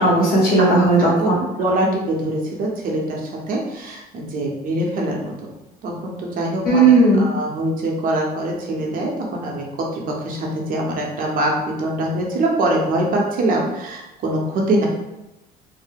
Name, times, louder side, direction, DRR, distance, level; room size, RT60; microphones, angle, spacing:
voice 1, 0.0-1.5 6.6-7.2, right 2 dB, 60° left, -5 dB, 1.3 m, -15 dB
voice 2, 1.6-5.3 5.8-6.8 7.2-9.6 9.9-14.9, right 1 dB, 55° right, -1 dB, 0.7 m, -23 dB
2.7 x 2.0 x 3.5 m, 0.95 s
cardioid pair, 110°, 17 cm